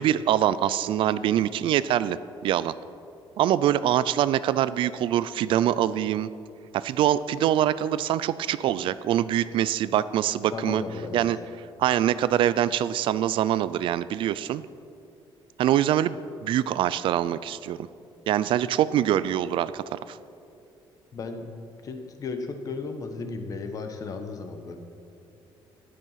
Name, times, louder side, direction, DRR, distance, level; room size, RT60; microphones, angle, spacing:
voice 1, 0.0-2.7 3.4-6.3 6.7-10.8 11.1-11.4 11.8-14.6 15.6-17.9 18.3-20.2, right 11 dB, 65° right, 16 dB, 0.4 m, -24 dB
voice 2, 0.9-1.5 10.5-11.3 21.1-24.8, left 4 dB, 40° left, 6 dB, 1.2 m, -35 dB
13.5 x 11.0 x 5.8 m, 2.6 s
cardioid pair, 175°, 9 cm